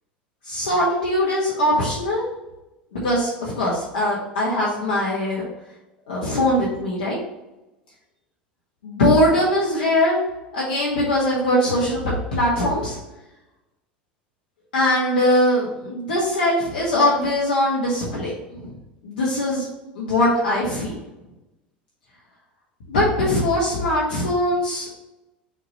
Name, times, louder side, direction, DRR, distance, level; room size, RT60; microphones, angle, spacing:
voice 1, 0.4-2.3 2.9-5.4 6.1-7.2 8.8-10.2 10.5-12.0 12.3-13.0 14.7-18.7 19.0-19.7 19.9-20.9 22.9-24.9, left 1 dB, 70° left, -6 dB, 1.5 m, -21 dB
5.8 x 3.0 x 5.3 m, 0.99 s
figure-of-eight pair, 75°, 5 cm